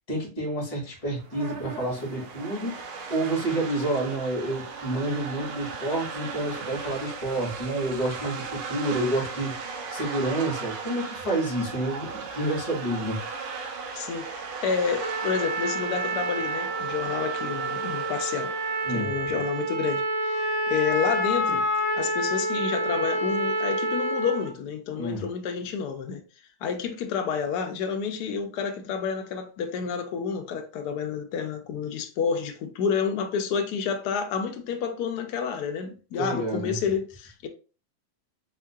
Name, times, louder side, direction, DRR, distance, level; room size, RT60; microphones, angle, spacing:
voice 1, 0.1-13.2 18.8-19.1 24.9-25.2 36.2-36.8, right 1 dB, 20° left, 1.5 m, -29 dB
sound 1, 1.0-19.0, right 5 dB, 80° right, 1.5 m, -37 dB
voice 2, 13.9-18.5 18.9-21.7 22.0-26.2 26.6-37.5, left 6 dB, 75° left, 0.9 m, -29 dB
Trumpet, 15.0-24.5, right 1 dB, 60° right, 0.7 m, -28 dB
3.7 x 3.6 x 2.3 m
omnidirectional pair, 2.3 m